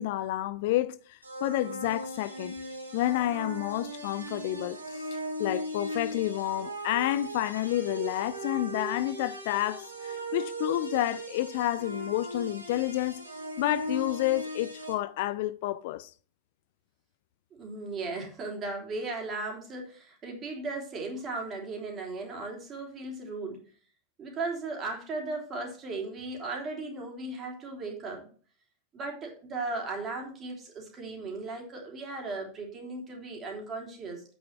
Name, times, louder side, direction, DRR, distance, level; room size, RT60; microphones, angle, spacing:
voice 1, 0.0-2.5 2.9-13.2 13.6-16.1, left 15 dB, 50° left, 0.4 m, -30 dB
sound 1, 1.2-14.9, right 1 dB, 80° right, 2.2 m, -38 dB
voice 2, 17.6-23.6 24.2-28.3 28.9-34.2, right 3 dB, 25° right, 3.2 m, -36 dB
8.5 x 6.3 x 5.7 m
figure-of-eight pair, 90°, 0 cm